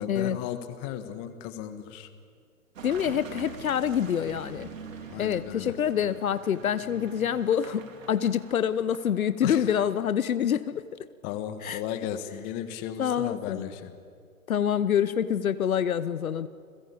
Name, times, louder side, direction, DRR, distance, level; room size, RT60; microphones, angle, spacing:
voice 1, 0.0-2.1 5.1-5.8 9.4-9.8 11.2-14.0, left 10 dB, 20° left, 9 dB, 1.6 m, -35 dB
voice 2, 2.8-4.7 5.2-10.8 11.6-11.8 13.0-13.6 14.5-16.5, left 9 dB, 65° left, 13 dB, 1.1 m, -26 dB
Car passing by / Engine, 2.8-9.3, right 5 dB, 60° right, 4.5 m, -44 dB
29.5 x 21.5 x 8.7 m, 2.2 s
hypercardioid pair, 150°, 44 cm